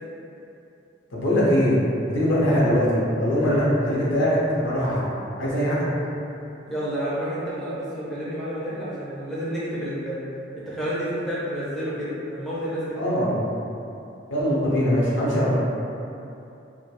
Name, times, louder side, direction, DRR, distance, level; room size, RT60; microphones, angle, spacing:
voice 1, 1.1-5.1 5.4-5.9 13.0-13.4 14.3-15.6, equal, 80° left, -7 dB, 0.6 m, -22 dB
voice 2, 6.7-10.2 10.6-13.1, equal, ahead, -10 dB, 0.4 m, -30 dB
2.2 x 2.1 x 2.8 m, 2.8 s
head